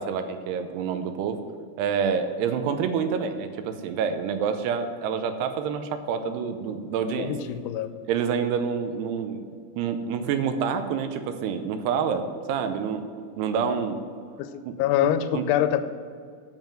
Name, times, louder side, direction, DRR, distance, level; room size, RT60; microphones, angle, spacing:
voice 1, 0.0-1.4 1.8-7.3 8.1-13.1 13.4-14.0 14.7-14.8 15.0-15.4, right 6 dB, 90° right, 8 dB, 2.8 m, -28 dB
voice 2, 7.2-7.9 14.4-14.5 14.8-15.8, left 11 dB, 90° left, 11 dB, 2.6 m, -24 dB
7.7 x 7.1 x 7.6 m, 2.2 s
omnidirectional pair, 4.6 m